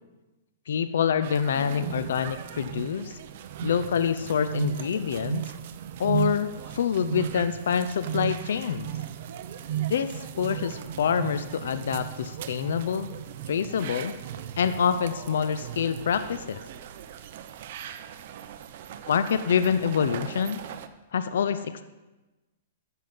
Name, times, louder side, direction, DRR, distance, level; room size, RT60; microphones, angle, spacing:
voice 1, 0.7-3.2 3.6-5.4 6.0-8.9 9.9-13.1 13.5-14.1 14.6-16.6 19.1-20.6 21.1-21.8, left 7 dB, 75° left, 12 dB, 0.6 m, -26 dB
sound 1, 1.2-20.9, right 11 dB, 55° right, 0.8 m, -36 dB
12.5 x 7.5 x 5.6 m, 1.1 s
hypercardioid pair, 140°, 0 cm